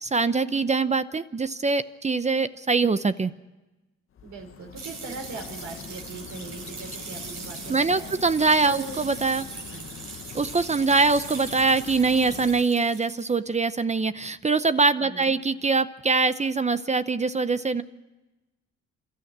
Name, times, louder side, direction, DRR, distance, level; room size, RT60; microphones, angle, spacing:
voice 1, 0.0-3.3 7.7-9.5 10.3-17.8, right 4 dB, 25° right, 13 dB, 0.7 m, -23 dB
sound 1, 4.1-12.7, left 9 dB, 45° left, 0.7 m, -43 dB
voice 2, 4.2-8.1 8.6-9.0 9.5-9.9 15.0-15.4, right 4 dB, 80° right, 2 dB, 5.4 m, -40 dB
sound 2, 4.8-13.2, right 5 dB, 55° right, 4.0 m, -41 dB
28.0 x 13.0 x 8.7 m, 1.1 s
cardioid pair, 90°, 30 cm